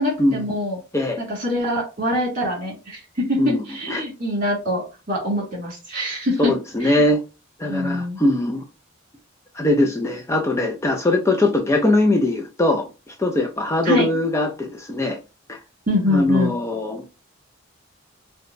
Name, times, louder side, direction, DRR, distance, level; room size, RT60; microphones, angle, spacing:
voice 1, 0.0-0.8 1.2-3.4 3.7-6.5 6.8-7.0 7.7-8.2 13.8-14.1 15.9-16.5, left 1 dB, 45° right, 2.0 m, -24 dB
voice 2, 3.4-4.0 6.4-7.2 7.6-8.6 9.5-15.2 15.5-15.6 16.1-17.0, left 1 dB, 15° left, 0.4 m, -21 dB
4.7 x 2.2 x 2.5 m
head